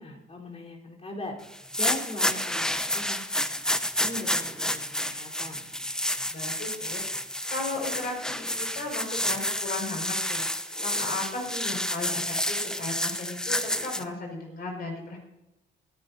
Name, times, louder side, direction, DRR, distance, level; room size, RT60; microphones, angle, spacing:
voice 1, 0.0-1.4 1.8-5.6, left 2 dB, 30° left, -2 dB, 3.9 m, -40 dB
sound 1, 1.5-14.0, left 1 dB, 5° left, 0.7 m, -30 dB
voice 2, 6.3-7.0 7.5-15.2, left 3 dB, 50° left, 0 dB, 5.5 m, -36 dB
24.0 x 10.0 x 2.7 m, 0.96 s
cardioid pair, 90°, 20 cm